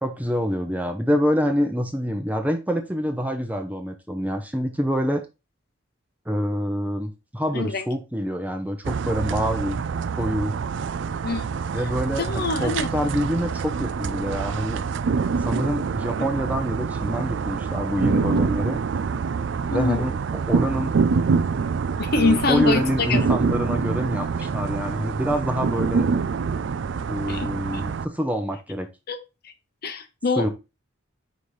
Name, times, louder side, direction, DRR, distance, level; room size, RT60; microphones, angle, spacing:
voice 1, 0.0-5.2 6.3-9.8 10.1-10.6 11.7-14.8 15.4-18.8 19.7-20.2 20.5-20.9 22.2-26.1 27.1-28.9 30.4-30.5, equal, 10° right, 6 dB, 0.7 m, -26 dB
voice 2, 7.5-7.8 11.2-11.4 12.2-12.9 16.2-16.3 19.7-20.0 22.0-22.8 23.1-23.2 27.3-27.5 29.1-29.2 29.8-30.5, left 3 dB, 50° left, 8 dB, 0.9 m, -24 dB
sound 1, 8.8-28.1, right 5 dB, 60° right, 0.4 m, -26 dB
5.2 x 4.2 x 4.8 m, 0.27 s
head